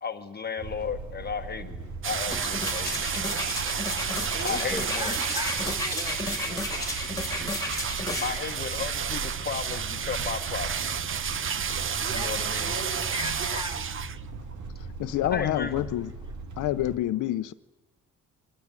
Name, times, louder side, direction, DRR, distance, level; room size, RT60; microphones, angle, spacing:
voice 1, 0.0-3.0 3.2-3.4 4.4-5.1 8.2-10.7 12.2-12.7 15.3-15.7, left 6 dB, 35° left, 6 dB, 1.4 m, -34 dB
sound 1, 0.6-17.0, right 4 dB, 75° right, 2.5 m, -39 dB
sound 2, 2.0-14.2 14.5-14.6, right 7 dB, 40° right, 1.0 m, -31 dB
sound 3, 2.2-8.4 9.0-9.1, left 2 dB, 10° left, 3.2 m, -33 dB
voice 2, 3.9-6.2 6.5-6.9 12.0-14.0, equal, 15° right, 3 dB, 4.3 m, -38 dB
voice 3, 11.7-12.1 15.0-16.1 16.6-17.5, left 14 dB, 80° left, 12 dB, 0.8 m, -28 dB
23.5 x 18.0 x 9.1 m, 1.1 s
cardioid pair, 90°, 30 cm